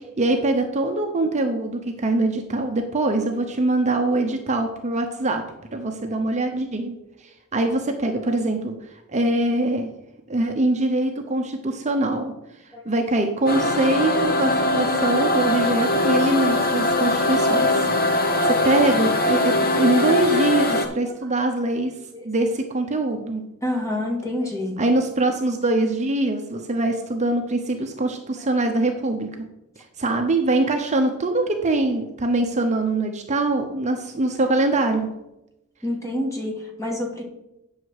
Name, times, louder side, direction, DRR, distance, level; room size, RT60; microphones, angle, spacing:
voice 1, 0.2-5.5 5.7-9.9 10.3-12.3 12.9-17.8 18.2-21.9 22.2-23.4 24.8-29.5 30.0-35.1, right 2 dB, 30° right, 4 dB, 0.8 m, -23 dB
sound 1, 13.5-20.9, left 2 dB, 45° left, 1.1 m, -21 dB
voice 2, 23.6-24.8 35.8-37.2, left 1 dB, 15° left, 1 dB, 1.8 m, -28 dB
9.6 x 6.4 x 4.8 m, 0.90 s
head